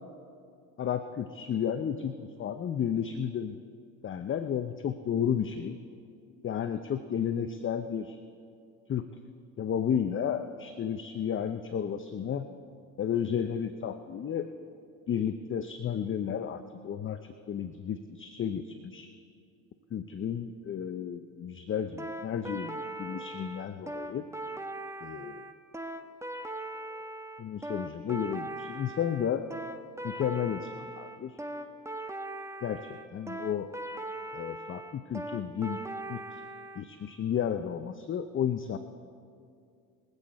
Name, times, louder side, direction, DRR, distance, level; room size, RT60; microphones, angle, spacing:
voice 1, 0.8-3.6 4.0-5.8 6.4-8.2 8.9-9.1 9.6-12.5 13.0-14.5 15.1-19.1 19.9-24.2 25.0-25.5 27.4-29.5 30.0-31.4 32.6-33.7 34.3-35.8 36.1-36.4 36.8-38.8, left 8 dB, 30° left, 9 dB, 0.7 m, -32 dB
sound 1, 22.0-36.8, right 1 dB, 5° right, 1.1 m, -39 dB
24.0 x 8.1 x 4.2 m, 2.4 s
hypercardioid pair, 70°, 40 cm